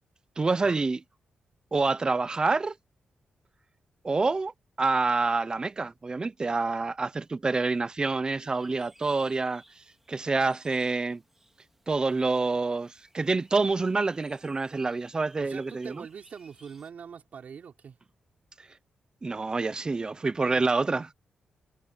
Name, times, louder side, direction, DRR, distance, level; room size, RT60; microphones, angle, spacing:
voice 1, 0.4-1.0 1.7-2.7 4.0-4.5 4.8-9.6 10.1-11.2 11.9-15.9 19.2-21.1, right 3 dB, 30° right, 0.7 m, -27 dB
sound 1, 8.4-16.9, right 1 dB, 10° right, 3.7 m, -60 dB
voice 2, 15.4-18.0, right 7 dB, 60° right, 5.5 m, -43 dB
cardioid pair, 95°, 3 cm